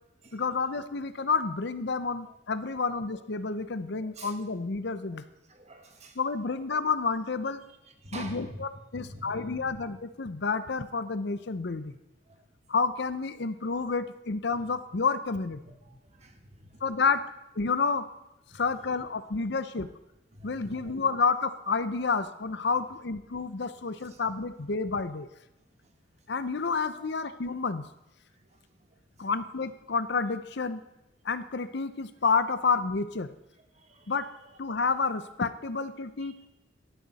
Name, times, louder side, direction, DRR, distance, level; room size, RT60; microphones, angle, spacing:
voice 1, 0.3-5.2 6.2-7.6 8.1-11.9 12.7-15.6 16.8-17.2 17.6-18.0 18.5-19.9 20.4-25.3 26.3-27.9 29.2-30.8 31.2-33.3 34.1-34.3 34.6-36.3, left 4 dB, 60° left, 12 dB, 0.7 m, -29 dB
voice 2, 4.0-4.3 5.5-6.2 8.0-8.6 8.9-9.8 12.3-12.4 13.6-13.7 15.6-16.8 18.5-18.6 20.3-21.0 24.0-24.2 28.4-28.6 29.2-29.3 33.7-34.1 36.2-36.5, right 1 dB, 35° right, 5 dB, 1.6 m, -47 dB
17.5 x 12.5 x 4.1 m, 0.92 s
head